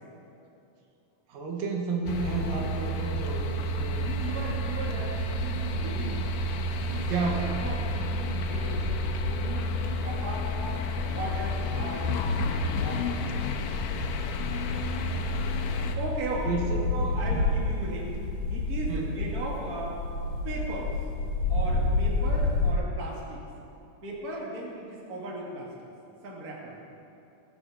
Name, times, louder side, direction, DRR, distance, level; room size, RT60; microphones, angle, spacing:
voice 1, 1.3-4.0 7.1-7.6 16.4-17.5 18.9-19.1, right 4 dB, 85° right, 0 dB, 3.2 m, -32 dB
sound 1, 2.1-16.0, left 1 dB, 75° left, 2.3 m, -30 dB
voice 2, 4.0-6.3 6.8-8.9 9.3-12.1 12.4-13.7 15.9-16.5 16.9-18.2 18.5-20.0 20.4-20.9 21.5-23.4 24.0-25.7 26.2-26.8, right 2 dB, 30° right, -2 dB, 2.0 m, -37 dB
sound 2, 4.1-4.5 4.9-6.3 6.7-22.7, left 3 dB, 60° left, 2.3 m, -32 dB
18.0 x 8.0 x 6.3 m, 2.8 s
omnidirectional pair, 3.9 m